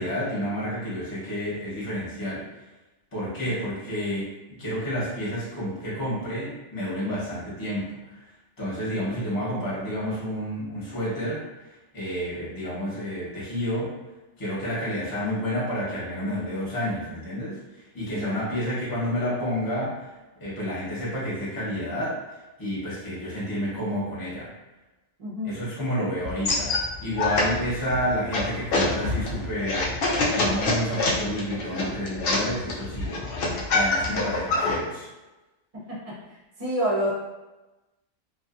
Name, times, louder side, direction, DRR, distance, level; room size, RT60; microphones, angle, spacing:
voice 1, 0.0-2.4 3.1-8.3 8.6-11.4 11.9-13.9 14.4-20.1 20.4-24.5 25.4-26.7 27.0-33.2 33.7-35.1, equal, 20° left, -8 dB, 0.9 m, -30 dB
voice 2, 3.2-3.6 8.9-9.1 18.1-18.4 25.2-25.6 35.9-37.1, equal, 40° right, -6 dB, 0.5 m, -30 dB
sound 1, 26.2-34.8, left 2 dB, 65° left, 0.6 m, -26 dB
2.4 x 2.4 x 2.4 m, 1.1 s
omnidirectional pair, 1.4 m